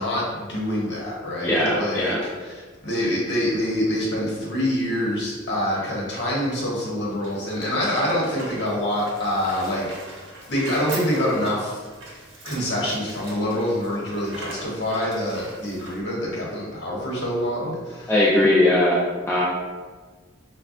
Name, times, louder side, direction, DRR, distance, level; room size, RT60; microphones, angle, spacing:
voice 1, 0.0-2.2 2.4-11.8 12.4-18.1, left 1 dB, 55° left, -4 dB, 0.9 m, -26 dB
voice 2, 1.4-2.2 18.1-19.4, left 1 dB, 15° left, -7 dB, 0.4 m, -20 dB
sound 1, 6.9-16.0, right 2 dB, 65° right, 0.8 m, -41 dB
5.0 x 2.2 x 2.4 m, 1.4 s
head